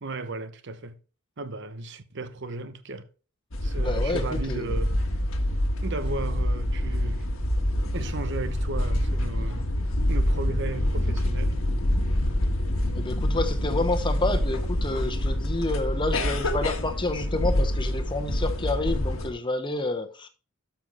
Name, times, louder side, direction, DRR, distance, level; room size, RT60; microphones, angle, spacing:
voice 1, 0.0-1.0 1.4-3.1 3.6-5.1 5.8-7.3 7.9-9.7 10.1-11.6, right 3 dB, 60° right, 0.9 m, -35 dB
sound 1, 3.5-19.3, left 1 dB, 85° left, 1.5 m, -26 dB
voice 2, 3.8-4.8 13.0-20.3, left 2 dB, 25° left, 1.1 m, -29 dB
13.0 x 5.7 x 3.3 m
head